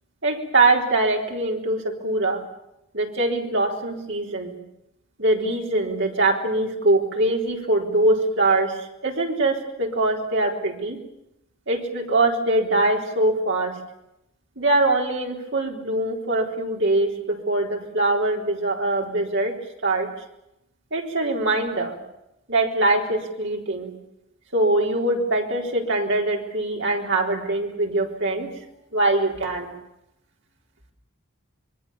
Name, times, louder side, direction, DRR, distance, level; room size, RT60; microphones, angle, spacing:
voice 1, 0.2-2.4 2.9-4.6 5.2-11.0 11.7-13.8 14.6-19.6 19.8-20.1 20.9-22.0 22.5-23.9 24.5-28.5 28.9-29.7, right 2 dB, 55° right, 1 dB, 4.0 m, -23 dB
26.5 x 22.0 x 7.2 m, 0.84 s
head